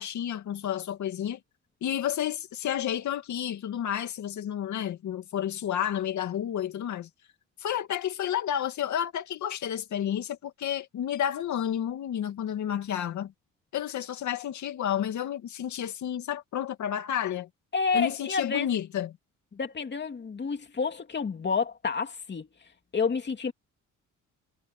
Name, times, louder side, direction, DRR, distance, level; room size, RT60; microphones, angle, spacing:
voice 1, 0.0-1.4 1.8-7.1 7.6-13.3 13.7-17.5 17.9-19.1, left 10 dB, 70° left, 2.4 m, -31 dB
voice 2, 17.7-18.7 19.5-22.5 22.9-23.5, left 5 dB, 35° left, 2.7 m, -29 dB
cardioid pair, 90°, 30 cm